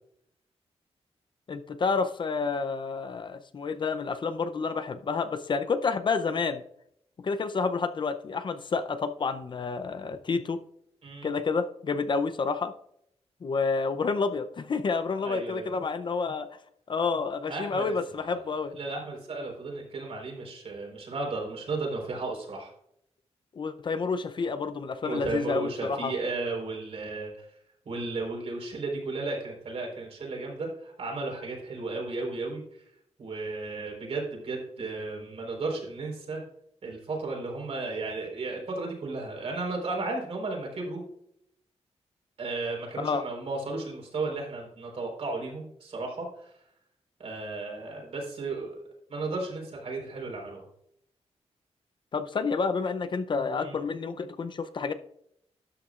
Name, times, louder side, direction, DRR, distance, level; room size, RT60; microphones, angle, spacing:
voice 1, 1.5-6.6 7.2-10.6 11.2-12.7 13.4-16.5 16.9-18.8 23.5-26.1 43.0-43.2 52.1-54.9, left 4 dB, 45° left, 10 dB, 0.6 m, -29 dB
voice 2, 11.0-11.4 15.2-15.8 17.5-22.7 25.0-27.5 27.9-32.8 33.2-36.4 36.8-41.0 42.4-46.5 47.2-48.8 49.1-50.7 53.6-53.8, right 3 dB, 65° right, -1 dB, 4.1 m, -34 dB
12.5 x 8.6 x 2.4 m, 0.74 s
wide cardioid pair, 135°, 11 cm